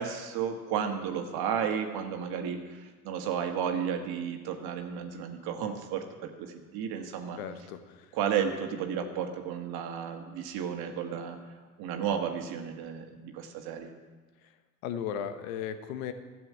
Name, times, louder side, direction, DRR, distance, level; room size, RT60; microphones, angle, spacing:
voice 1, 0.0-7.4 8.1-11.4 11.8-13.9, right 8 dB, 60° right, 4 dB, 1.7 m, -33 dB
voice 2, 7.4-8.2 14.4-14.6 14.8-16.1, left 8 dB, 75° left, 10 dB, 1.1 m, -36 dB
12.5 x 6.9 x 8.6 m, 1.3 s
hypercardioid pair, 65°, 42 cm